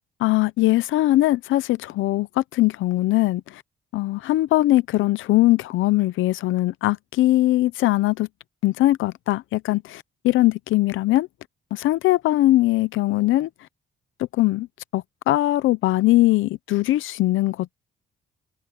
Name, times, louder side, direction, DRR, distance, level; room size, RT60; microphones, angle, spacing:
voice 1, 0.2-3.6 3.9-8.3 8.6-11.3 11.7-13.5 14.4-14.7 14.9-17.8, left 16 dB, 80° left, 0.7 m, -21 dB
open air
cardioid pair, 90°, 20 cm